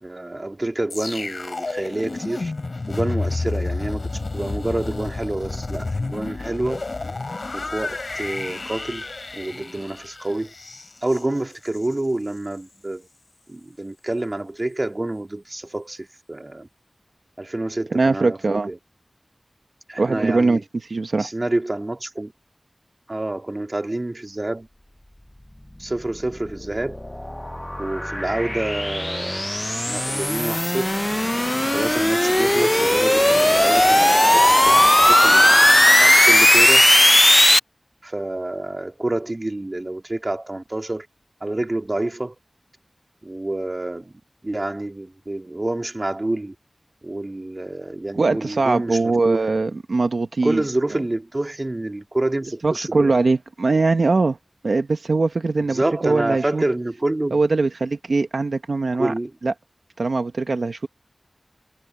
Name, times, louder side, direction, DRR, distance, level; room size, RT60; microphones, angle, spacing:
voice 1, 0.0-2.5 2.9-6.8 7.5-9.1 9.3-10.5 11.0-13.1 13.5-16.7 17.4-18.8 19.9-20.6 21.2-22.3 23.1-24.7 25.8-27.0 27.8-29.4 29.7-31.0 31.6-36.9 38.0-41.1 41.4-42.4 43.2-46.5 47.0-49.4 50.4-53.2 55.7-57.4 59.0-59.3, right 2 dB, 40° right, 2.5 m, -28 dB
sound 1, 0.9-12.0 12.3-12.6, left 3 dB, 75° left, 3.8 m, -30 dB
voice 2, 17.9-18.7 20.0-21.3 48.2-50.6 52.6-54.4 54.6-56.6 57.3-59.1 59.4-59.5 60.0-60.9, right 3 dB, 90° right, 1.0 m, -21 dB
sound 2, 26.3-37.6, left 1 dB, 15° left, 0.6 m, -17 dB
wide cardioid pair, 50°, 0 cm